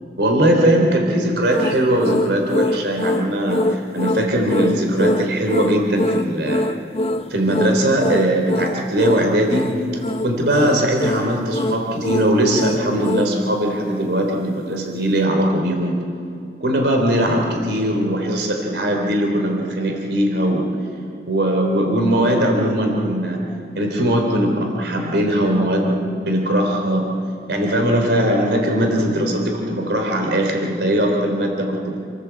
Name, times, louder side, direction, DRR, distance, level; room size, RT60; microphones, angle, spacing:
voice 1, 0.2-6.6 7.3-9.7 10.2-16.0 16.6-20.7 21.3-23.4 23.8-27.1 27.5-32.0, right 1 dB, 70° right, 2 dB, 3.6 m, -20 dB
sound 1, 1.5-13.4, left 1 dB, 35° left, 0.9 m, -23 dB
28.5 x 17.5 x 8.3 m, 2.6 s
head